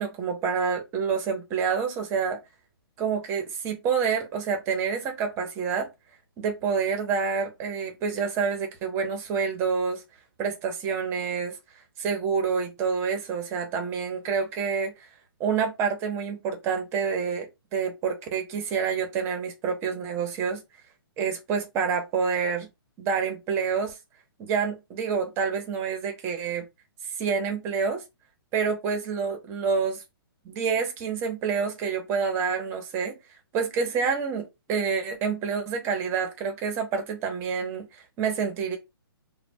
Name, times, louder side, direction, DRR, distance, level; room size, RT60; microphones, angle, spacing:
voice 1, 0.0-2.4 3.0-5.9 6.4-10.0 10.4-11.6 12.0-14.9 15.4-20.6 21.2-22.7 23.0-24.0 24.4-26.7 27.2-28.0 28.5-30.0 30.4-33.2 33.5-38.8, right 6 dB, 20° right, 0.6 m, -28 dB
3.2 x 2.0 x 2.6 m
hypercardioid pair, 155°, 13 cm